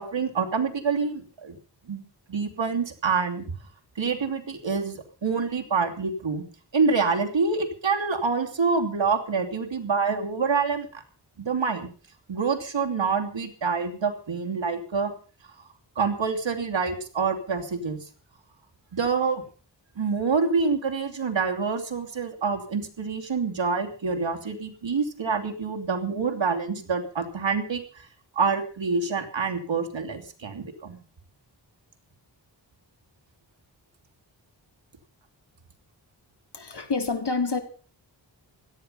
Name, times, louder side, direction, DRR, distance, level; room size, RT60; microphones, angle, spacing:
voice 1, 0.0-1.6 1.9-3.5 4.0-6.4 6.7-11.0 11.4-11.9 12.3-15.1 16.0-18.0 18.9-19.4 20.0-28.1 28.3-31.0, right 5 dB, 85° right, 5 dB, 3.0 m, -26 dB
voice 2, 36.5-37.6, left 4 dB, 65° left, 8 dB, 3.1 m, -27 dB
17.0 x 13.0 x 5.6 m, 0.40 s
wide cardioid pair, 75°, 44 cm